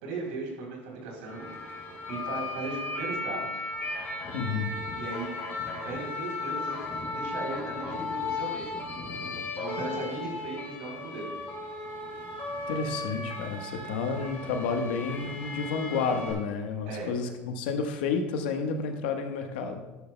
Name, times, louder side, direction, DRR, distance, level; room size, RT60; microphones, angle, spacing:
voice 1, 0.0-1.5 2.1-3.6 4.9-5.4 5.7-8.8 9.6-11.3 16.9-17.1, right 3 dB, 80° right, -1 dB, 3.6 m, -37 dB
sound 1, 1.2-16.3, left 3 dB, 35° left, 2.9 m, -36 dB
voice 2, 4.3-4.7 12.7-19.8, left 5 dB, 85° left, 4 dB, 1.3 m, -30 dB
12.0 x 11.0 x 2.3 m, 1.1 s
supercardioid pair, 105°, 5 cm